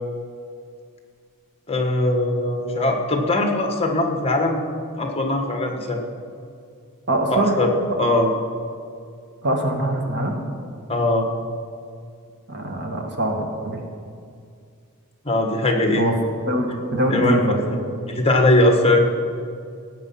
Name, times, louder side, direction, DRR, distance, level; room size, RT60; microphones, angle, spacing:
voice 1, 1.7-4.6 5.0-6.0 7.3-7.7 8.0-8.3 10.9-11.3 15.2-16.0 17.1-17.5 18.1-19.0, left 2 dB, 25° left, 3 dB, 1.4 m, -20 dB
voice 2, 7.1-7.6 9.4-10.4 12.5-13.8 16.0-16.1 16.5-17.7, right 1 dB, 50° right, 2 dB, 1.9 m, -23 dB
17.5 x 8.8 x 5.8 m, 2.3 s
head